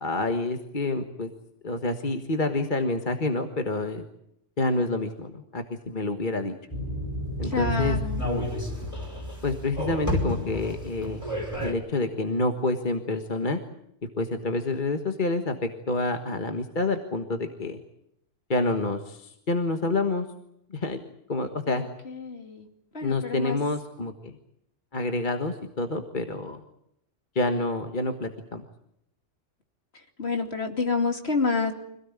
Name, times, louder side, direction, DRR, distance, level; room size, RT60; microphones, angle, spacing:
voice 1, 0.0-1.3 1.6-4.0 4.6-6.5 7.4-8.0 8.2-8.5 9.4-11.3 11.6-13.6 14.2-15.5 15.9-17.8 18.5-20.3 20.7-21.0 21.3-21.8 23.0-24.3 24.9-26.6 27.3-28.6, left 2 dB, 40° left, 6 dB, 1.6 m, -28 dB
sound 1, 6.7-11.7, left 1 dB, 15° left, 5.4 m, -30 dB
voice 2, 7.5-8.2 21.7-21.8 22.2-22.6 22.9-23.6 30.2-31.7, left 4 dB, 55° left, 4 dB, 3.0 m, -28 dB
26.0 x 17.5 x 9.6 m, 0.77 s
omnidirectional pair, 1.3 m